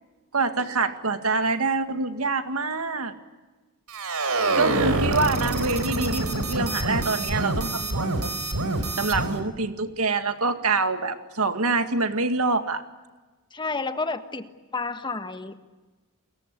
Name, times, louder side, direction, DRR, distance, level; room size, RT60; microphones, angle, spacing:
voice 1, 0.3-3.1 4.6-8.3 9.0-12.8, right 3 dB, 70° right, 8 dB, 2.1 m, -25 dB
sound 1, 3.9-9.4, right 2 dB, 90° right, 4.1 m, -26 dB
voice 2, 13.5-14.5 14.7-15.7, left 3 dB, 20° left, 9 dB, 1.5 m, -30 dB
30.0 x 22.5 x 8.5 m, 1.2 s
head